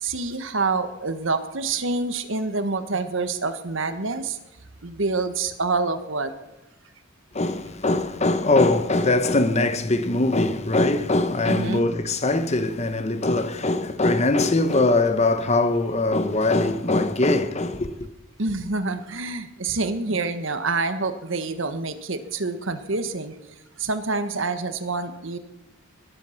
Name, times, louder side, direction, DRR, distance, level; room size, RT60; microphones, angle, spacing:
voice 1, 0.0-4.4 4.8-6.3 7.9-8.0 11.5-11.9 18.4-23.3 23.8-25.4, right 3 dB, 65° right, 1.4 m, -27 dB
voice 2, 7.3-18.1, left 2 dB, 30° left, 1.0 m, -22 dB
20.5 x 11.0 x 5.9 m
head